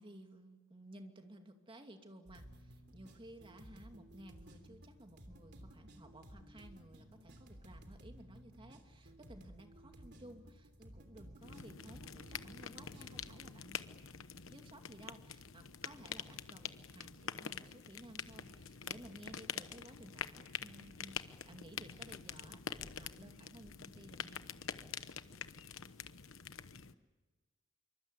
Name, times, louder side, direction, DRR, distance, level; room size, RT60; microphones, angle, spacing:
voice 1, 0.0-13.9 14.5-24.4, right 1 dB, 25° right, 5 dB, 2.4 m, -56 dB
sound 1, 2.3-13.3, right 1 dB, 55° right, 3.2 m, -56 dB
sound 2, 11.4-26.9, left 7 dB, 75° left, 1.1 m, -46 dB
26.5 x 24.5 x 8.3 m, 1.2 s
head